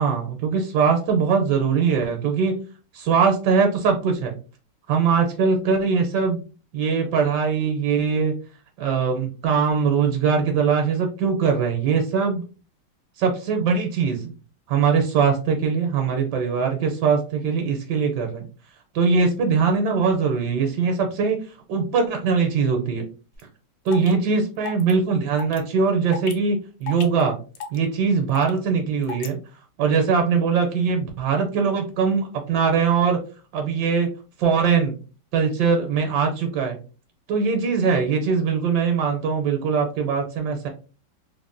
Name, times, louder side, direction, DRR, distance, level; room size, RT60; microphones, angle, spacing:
voice 1, 0.0-2.6 2.9-4.3 4.9-6.4 6.7-8.3 8.8-12.4 13.2-14.3 14.7-18.5 18.9-21.4 21.7-23.1 23.8-27.4 27.7-29.4 29.8-33.2 33.5-34.1 34.4-34.9 35.3-36.8 37.3-40.7, right 5 dB, 80° right, 4 dB, 1.2 m, -21 dB
sound 1, 23.4-23.5 23.9-24.1 24.6-24.9 25.4-25.6 26.1-26.3 26.9-27.2 27.6-27.8 28.3-28.6 29.0-29.3, left 5 dB, 70° left, 0.8 m, -33 dB
3.5 x 2.1 x 2.4 m, 0.35 s
omnidirectional pair, 1.9 m